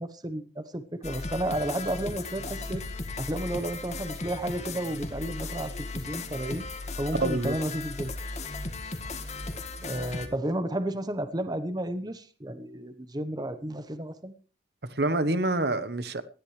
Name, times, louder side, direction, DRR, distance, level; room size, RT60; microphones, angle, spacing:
voice 1, 0.0-2.8 3.2-6.6 7.0-8.1 9.8-14.3, right 1 dB, 25° right, 1.1 m, -32 dB
sound 1, 1.0-10.3, left 3 dB, 40° left, 1.9 m, -36 dB
voice 2, 7.2-7.6 14.8-16.2, right 2 dB, 65° right, 1.2 m, -27 dB
19.5 x 13.5 x 3.3 m
head